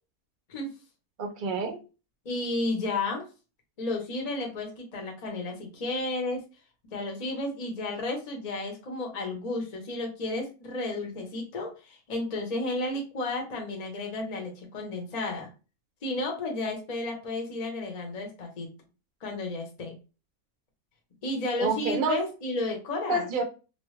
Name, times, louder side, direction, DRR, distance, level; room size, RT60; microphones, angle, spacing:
voice 1, 1.2-1.8 21.6-22.2 23.1-23.4, right 3 dB, 50° right, 0.6 m, -28 dB
voice 2, 2.2-3.2 3.8-6.4 6.9-15.5 16.0-18.7 19.2-19.9 21.2-23.3, left 2 dB, 35° left, 0.8 m, -32 dB
2.9 x 2.2 x 3.1 m
omnidirectional pair, 1.5 m